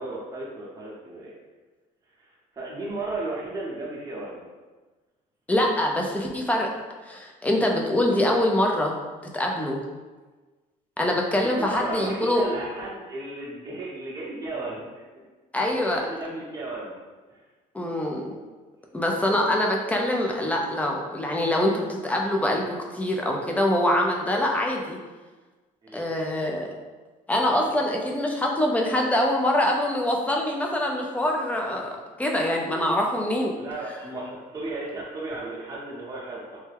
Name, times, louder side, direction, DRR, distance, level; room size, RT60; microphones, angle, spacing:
voice 1, 0.0-1.3 2.2-4.4 11.4-15.2 15.7-16.9 17.3-17.4 25.8-26.1 33.6-36.6, right 2 dB, 25° right, -4 dB, 0.8 m, -34 dB
voice 2, 5.5-6.7 7.0-8.9 9.3-9.8 11.0-12.4 15.5-16.0 17.7-18.2 18.9-25.0 25.9-26.7 27.3-31.9 32.2-33.5, left 1 dB, 10° left, 0 dB, 0.4 m, -24 dB
3.2 x 2.1 x 3.3 m, 1.3 s
cardioid pair, 130°, 15 cm